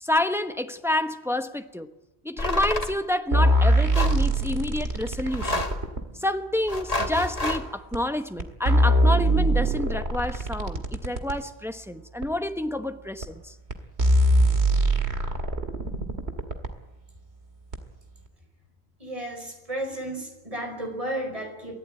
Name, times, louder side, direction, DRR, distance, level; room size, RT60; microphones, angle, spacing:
voice 1, 0.0-1.9 2.2-5.6 6.2-13.5, left 1 dB, ahead, 1.0 m, -28 dB
sound 1, 2.4-3.0 3.9-4.2 5.3-5.9 6.7-7.6, left 1 dB, 35° left, 2.1 m, -28 dB
sound 2, 3.3-6.0 7.0-7.1 7.9-8.0 8.4-11.4 12.2-12.3 13.2-13.3 13.7-13.8 14.0-16.7 17.7-17.8, right 1 dB, 80° right, 2.4 m, -22 dB
voice 2, 19.0-21.7, right 1 dB, 30° right, 5.3 m, -33 dB
23.5 x 16.5 x 9.1 m
omnidirectional pair, 1.1 m